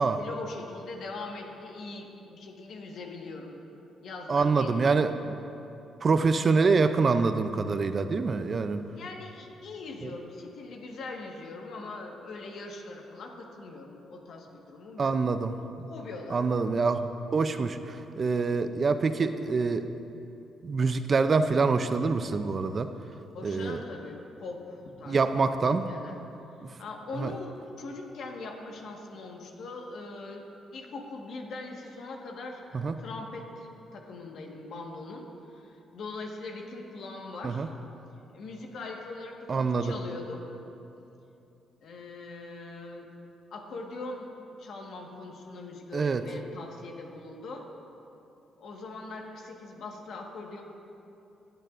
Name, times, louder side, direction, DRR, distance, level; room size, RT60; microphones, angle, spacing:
voice 1, 0.0-3.5 4.0-4.8 8.9-15.1 15.9-16.4 23.3-25.4 25.9-26.2 26.8-30.4 30.7-37.7 38.3-40.4 41.8-43.1 43.5-44.3 44.6-47.7 48.6-50.6, left 3 dB, 65° left, 1 dB, 1.5 m, -41 dB
voice 2, 4.3-5.4 6.0-8.8 10.0-10.1 15.0-15.9 16.3-17.0 17.3-19.9 20.6-22.9 23.4-23.8 25.1-25.9 26.6-26.7 27.2-27.3 32.7-32.9 37.4-37.7 39.5-39.9 45.9-46.2, right 4 dB, 40° right, 10 dB, 0.5 m, -26 dB
19.0 x 9.0 x 2.5 m, 2.9 s
cardioid pair, 90°, 0 cm